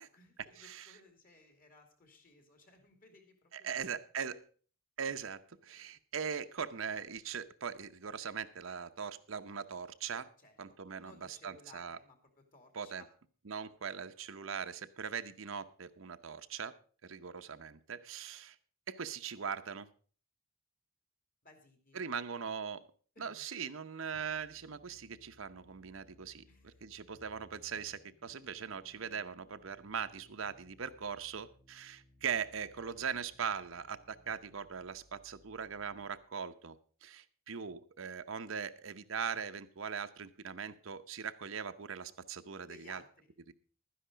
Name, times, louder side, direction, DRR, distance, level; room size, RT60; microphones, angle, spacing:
voice 1, 0.0-4.0 10.4-13.1 21.4-22.0 23.1-23.4 26.5-26.8 42.6-43.3, left 3 dB, 40° left, 5 dB, 2.6 m, -60 dB
voice 2, 0.6-0.9 3.5-4.4 5.0-10.3 10.6-12.0 12.7-13.0 13.5-16.7 17.0-18.6 18.9-19.9 21.9-22.9 23.2-36.8 37.0-43.0 43.5-43.6, right 6 dB, 75° right, 10 dB, 0.8 m, -40 dB
sound 1, 24.1-36.1, equal, 65° left, 3.8 m, -65 dB
12.0 x 10.0 x 5.0 m, 0.42 s
head